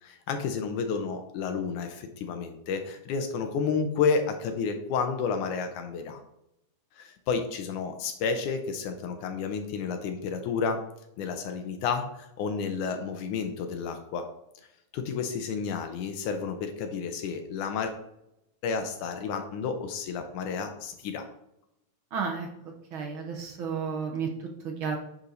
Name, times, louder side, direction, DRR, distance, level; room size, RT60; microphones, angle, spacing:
voice 1, 0.0-6.2 7.0-10.8 11.2-14.3 14.9-17.9 18.6-21.3, left 5 dB, 80° left, 6 dB, 2.2 m, -31 dB
voice 2, 22.1-22.5 22.9-24.3 24.6-25.0, right 6 dB, 70° right, 1 dB, 1.3 m, -32 dB
9.8 x 4.4 x 4.0 m, 0.83 s
omnidirectional pair, 3.6 m